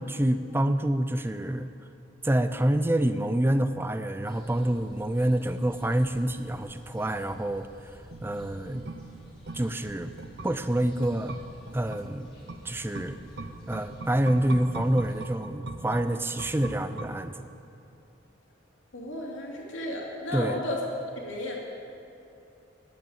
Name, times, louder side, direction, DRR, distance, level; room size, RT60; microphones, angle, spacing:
voice 1, 0.0-1.7 2.2-7.7 8.2-8.8 9.5-10.1 10.4-11.4 11.7-12.3 12.6-13.2 13.7-17.5 20.3-20.6, right 1 dB, 10° right, 10 dB, 0.4 m, -27 dB
sound 1, 4.3-15.3, equal, 25° left, 2.3 m, -51 dB
sound 2, 8.1-17.6 17.9-18.0, right 2 dB, 55° right, 0.8 m, -42 dB
voice 2, 18.9-20.8 21.2-21.6, left 1 dB, 80° left, -2 dB, 2.5 m, -33 dB
10.5 x 8.3 x 8.7 m, 2.8 s
head